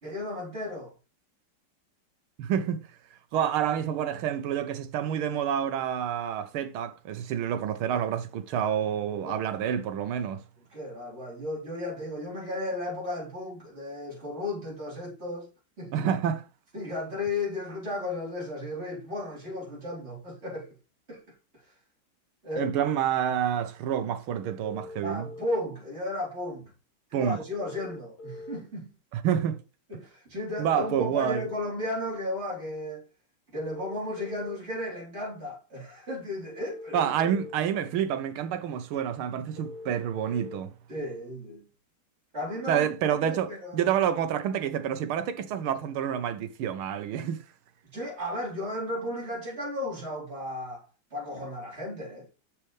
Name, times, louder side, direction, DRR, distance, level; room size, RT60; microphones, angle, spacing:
voice 1, 0.0-0.9 9.2-9.4 10.7-15.5 15.8-16.1 16.7-20.8 21.1-21.2 21.6-21.7 22.4-22.7 25.0-26.7 27.1-29.0 29.9-33.1 33.5-37.1 40.9-41.7 42.3-42.9 43.2-43.9 47.9-52.3, left 1 dB, 30° right, 4.3 m, -34 dB
voice 2, 2.4-2.8 3.3-10.4 15.9-16.4 22.6-25.3 27.1-27.4 29.1-29.6 30.6-31.5 36.9-40.7 42.7-47.4, right 9 dB, 80° right, 1.7 m, -28 dB
sound 1, 24.6-25.6 27.6-28.6 30.6-31.6 33.6-34.6 36.6-37.6 39.6-40.6, left 2 dB, 50° left, 2.0 m, -42 dB
7.0 x 6.6 x 3.3 m
omnidirectional pair, 2.3 m